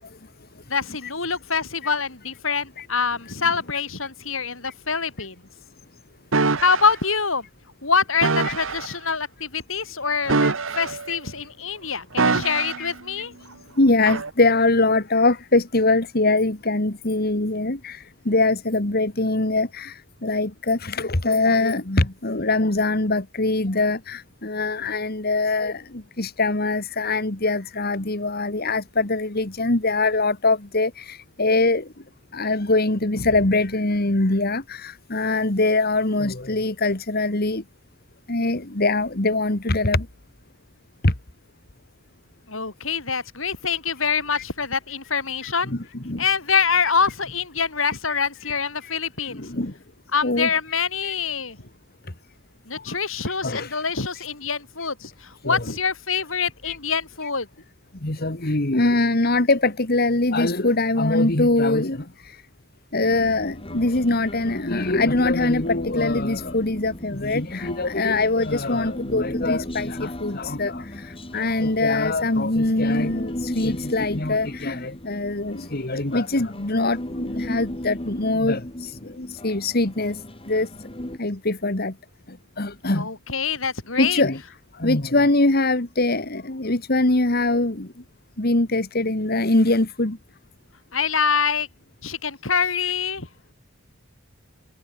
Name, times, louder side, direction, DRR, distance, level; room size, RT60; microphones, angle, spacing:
voice 1, 0.7-5.4 6.6-7.5 7.8-10.4 10.8-13.3 42.5-45.7 46.2-49.5 50.1-51.6 52.7-57.5 82.9-84.2 90.9-91.7 92.0-93.3, left 5 dB, 80° left, 5.3 m, -25 dB
sound 1, 6.3-6.9 8.2-8.9 10.2-11.2 12.2-12.9 14.1-14.3, right 3 dB, 75° right, 1.5 m, -23 dB
voice 2, 13.8-31.9 32.3-37.6 38.3-40.1 41.0-41.1 44.3-44.4 45.4-46.3 46.5-46.9 48.1-48.2 48.4-48.9 49.3-49.7 50.2-51.1 52.7-53.0 53.3-53.9 54.2-54.3 55.4-55.8 56.1-56.2 56.6-56.8 57.2-57.3 58.0-62.4 62.9-80.2 80.5-80.7 81.2-81.9 82.3-83.1 83.9-84.4 84.7-87.9 88.4-90.2 92.8-92.9, left 2 dB, 50° left, 2.1 m, -23 dB
Human voice, 63.0-81.2, left 1 dB, 30° left, 2.7 m, -35 dB
head